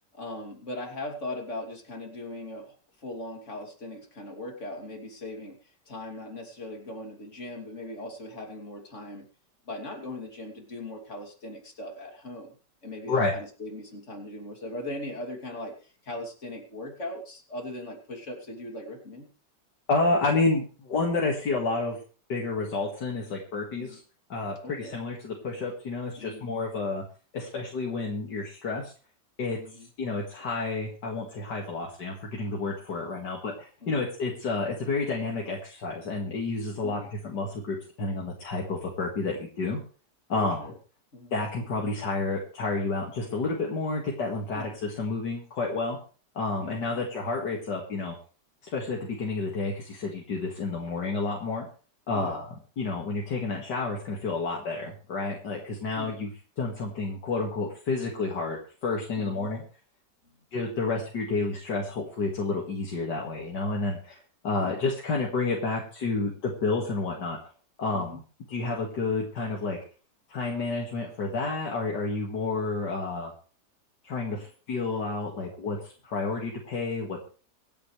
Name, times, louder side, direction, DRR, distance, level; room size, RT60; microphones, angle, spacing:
voice 1, 0.1-5.6 5.9-9.3 9.7-12.5 12.8-19.3 23.7-24.0 24.6-25.0 26.2-26.5 29.5-29.9 33.8-34.1 36.8-37.1 40.3-40.7 41.1-41.3 44.5-44.7 46.6-47.1 52.1-52.4 55.9-56.2 59.2-59.5 64.6-64.8 67.9-68.2, left 1 dB, 40° left, 2 dB, 3.3 m, -39 dB
voice 2, 19.9-22.0 22.3-24.0 24.3-27.0 27.3-28.9 29.4-29.6 30.0-39.8 40.3-40.7 41.3-46.0 46.3-48.1 48.6-51.7 52.1-52.5 52.8-56.3 56.6-59.6 60.5-64.2 64.4-67.4 67.8-68.2 68.5-69.8 70.3-73.3 74.0-77.2, left 3 dB, 75° left, -2 dB, 2.7 m, -30 dB
25.0 x 8.6 x 3.3 m, 0.37 s
omnidirectional pair, 1.8 m